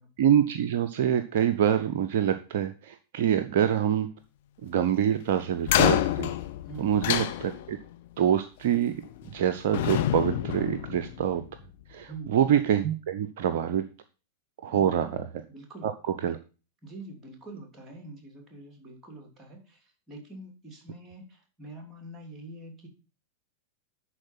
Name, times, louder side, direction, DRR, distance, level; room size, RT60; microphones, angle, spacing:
voice 1, 0.2-4.1 4.6-6.3 6.8-7.8 8.2-9.0 9.2-11.4 11.9-13.9 14.6-15.3 15.8-16.4, right 9 dB, 55° right, 10 dB, 0.6 m, -25 dB
sound 1, 5.6-7.9 9.0-9.4 9.7-11.5, left 13 dB, 55° left, 0.8 m, -27 dB
voice 2, 6.7-7.0 12.1-12.4 14.7-15.2 15.5-16.2 16.8-19.8 20.1-22.9, right 2 dB, 20° right, 3 dB, 2.8 m, -45 dB
11.0 x 4.4 x 5.8 m, 0.35 s
figure-of-eight pair, 90°, 0 cm